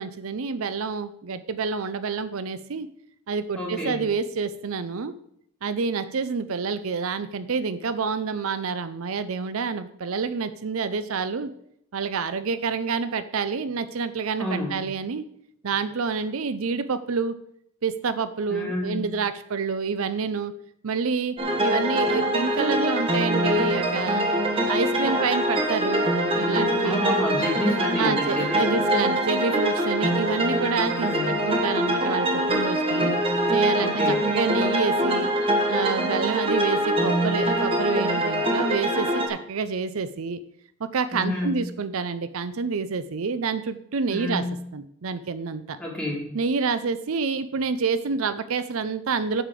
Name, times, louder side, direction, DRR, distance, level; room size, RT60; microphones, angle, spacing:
voice 1, 0.0-2.9 3.3-5.1 5.6-11.5 11.9-15.2 15.6-17.4 17.8-20.5 20.8-24.3 24.6-26.1 26.3-27.0 28.0-33.1 33.5-35.3 35.7-40.4 40.8-44.4 44.7-45.8 46.3-49.4, right 5 dB, 70° right, 13 dB, 0.5 m, -28 dB
voice 2, 3.6-4.0 14.4-14.8 18.5-19.0 26.8-28.8 30.8-31.4 33.8-34.2 41.1-41.6 44.1-44.5 45.8-46.3, left 1 dB, 5° left, -3 dB, 2.7 m, -29 dB
sound 1, 21.4-39.3, right 1 dB, 25° right, 1.3 m, -24 dB
8.7 x 5.0 x 7.4 m, 0.71 s
head